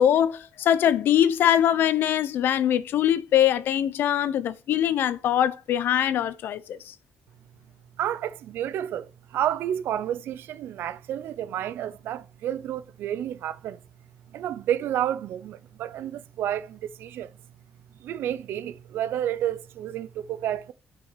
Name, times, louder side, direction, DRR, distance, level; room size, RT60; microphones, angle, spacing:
voice 1, 0.0-6.9, left 10 dB, 70° left, 0.7 m, -22 dB
voice 2, 8.0-13.8 14.3-17.3 18.0-20.7, right 11 dB, 85° right, 0.6 m, -30 dB
7.1 x 6.3 x 5.7 m
cardioid pair, 175°, 4 cm